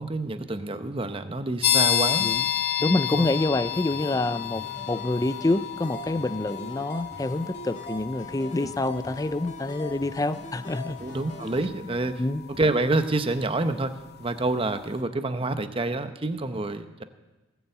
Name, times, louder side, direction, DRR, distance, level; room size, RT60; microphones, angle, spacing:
voice 1, 0.0-2.3 3.1-3.3 8.6-8.7 11.0-12.2 12.5-13.9 14.2-17.0, right 2 dB, 30° right, 9 dB, 0.8 m, -27 dB
sound 1, 1.6-14.1, left 11 dB, 55° left, 0.7 m, -31 dB
voice 2, 2.8-11.0 12.2-12.4, left 2 dB, 20° left, 14 dB, 0.4 m, -27 dB
sound 2, 3.1-11.6, equal, 40° left, 2.4 m, -43 dB
18.0 x 7.1 x 7.9 m, 1.1 s
head